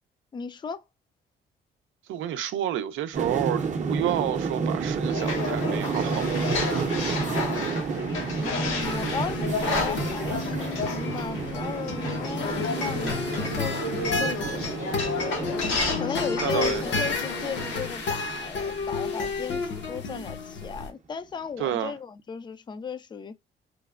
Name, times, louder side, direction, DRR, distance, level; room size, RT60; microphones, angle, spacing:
voice 1, 0.3-0.8 8.3-13.8 14.2-14.7 15.4-15.6 16.0-23.3, left 6 dB, 25° left, 0.3 m, -36 dB
voice 2, 2.1-6.9 15.8-16.0 16.4-16.8 21.6-21.9, right 11 dB, 80° right, 0.5 m, -30 dB
sound 1, 3.1-19.6 19.9-20.3, right 4 dB, 40° right, 0.6 m, -31 dB
sound 2, 5.1-17.8, left 4 dB, 85° left, 1.0 m, -32 dB
sound 3, 8.8-20.9, left 4 dB, 65° left, 0.8 m, -32 dB
3.2 x 2.1 x 2.3 m
cardioid pair, 90°, 20 cm